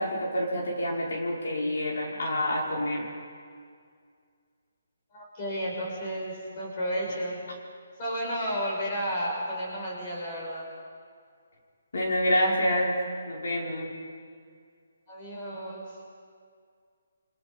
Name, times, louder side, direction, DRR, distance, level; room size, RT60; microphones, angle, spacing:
voice 1, 0.0-3.1 11.9-12.9 13.3-13.9, equal, 60° left, -3 dB, 5.7 m, -27 dB
voice 2, 5.1-7.4 8.0-10.7 15.1-16.0, equal, 25° left, -3 dB, 6.1 m, -32 dB
30.0 x 25.0 x 5.6 m, 2.2 s
hypercardioid pair, 175°, 0 cm